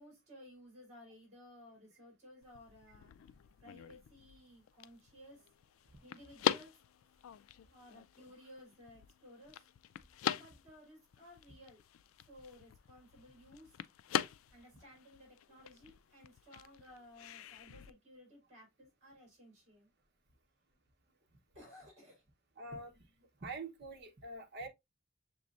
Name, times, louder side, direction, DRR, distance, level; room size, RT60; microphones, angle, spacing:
voice 1, 0.0-3.1 3.6-5.4 6.0-6.7 7.7-9.7 10.3-11.8 12.3-13.8 14.5-19.9 21.5-22.2, left 1 dB, 35° right, 3.4 m, -57 dB
sound 1, 2.4-17.9, left 9 dB, 90° left, 0.3 m, -43 dB
voice 2, 22.6-23.0 23.4-24.7, right 2 dB, 55° right, 1.1 m, -45 dB
6.7 x 3.1 x 2.5 m
head